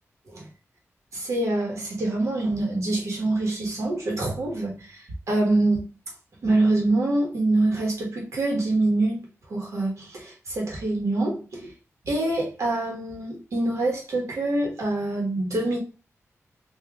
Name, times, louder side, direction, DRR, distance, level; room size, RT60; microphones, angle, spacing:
voice 1, 1.1-4.7 5.3-5.8 6.4-9.2 9.5-11.6 12.1-15.8, right 2 dB, 70° right, 1.4 m, -25 dB
3.6 x 2.7 x 3.5 m
wide cardioid pair, 175°, 5 cm